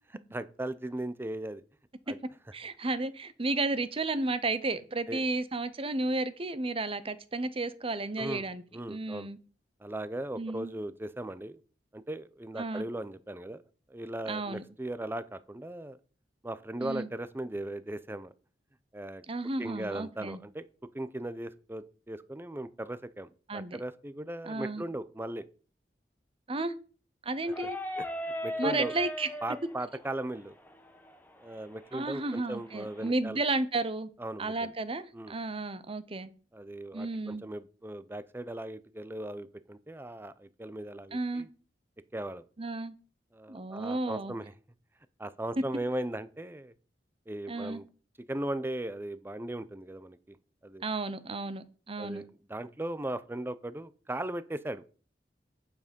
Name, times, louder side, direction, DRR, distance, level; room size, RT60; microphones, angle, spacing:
voice 1, 0.3-1.6 2.1-2.2 5.1-5.2 8.2-8.5 8.7-9.3 9.8-11.6 11.9-13.6 13.9-16.0 16.4-18.3 18.9-19.2 19.6-20.6 20.9-25.5 27.6-27.7 28.0-28.1 28.4-28.9 29.4-30.5 31.4-33.4 34.2-34.7 35.1-35.4 36.5-41.5 42.1-42.4 43.3-44.5 45.2-46.7 47.3-47.9 48.3-50.4 50.6-50.8 52.0-54.8, right 1 dB, 15° right, 14 dB, 0.7 m, -38 dB
voice 2, 2.5-8.6 8.9-9.4 10.4-10.7 12.6-12.9 14.3-14.6 16.8-17.1 19.3-20.4 23.5-23.8 24.4-24.8 26.5-26.7 27.2-27.8 28.6-29.3 31.9-34.1 34.4-36.3 36.9-37.4 41.1-41.5 42.6-42.9 43.5-44.3 47.5-47.8 50.8-52.2, right 2 dB, 35° right, 13 dB, 0.9 m, -33 dB
sound 1, 27.4-33.1, equal, 10° left, 1.1 m, -40 dB
8.9 x 7.4 x 5.3 m, 0.38 s
head